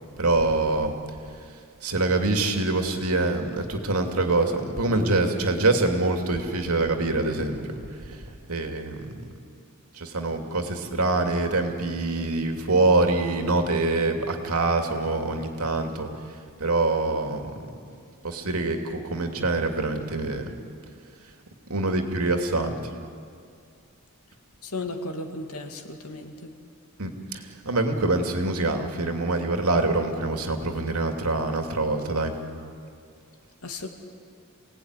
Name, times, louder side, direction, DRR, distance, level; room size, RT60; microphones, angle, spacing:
voice 1, 0.2-0.9 1.8-7.6 8.0-9.2 9.9-16.1 16.6-17.5 18.2-20.5 21.7-22.8 27.0-32.3, right 2 dB, 85° right, 4 dB, 2.6 m, -25 dB
voice 2, 24.6-26.5 33.6-33.9, left 2 dB, 85° left, 4 dB, 2.5 m, -35 dB
27.5 x 18.0 x 9.8 m, 2.3 s
head